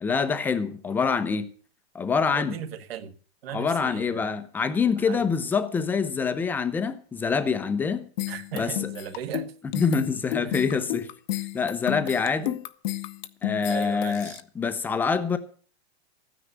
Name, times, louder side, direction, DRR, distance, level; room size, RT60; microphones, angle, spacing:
voice 1, 0.0-1.5 1.9-2.5 3.5-8.1 8.5-8.7 9.7-11.1 11.5-12.6 13.4-15.4, left 5 dB, 5° left, 0.6 m, -25 dB
voice 2, 2.3-3.1 3.4-4.2 5.0-5.3 8.3-9.5 10.4-10.6 12.0-12.2 13.7-14.4, right 9 dB, 60° right, 1.6 m, -37 dB
sound 1, 8.2-14.4, left 15 dB, 45° left, 0.8 m, -32 dB
13.5 x 9.8 x 6.7 m
hypercardioid pair, 160°, 33 cm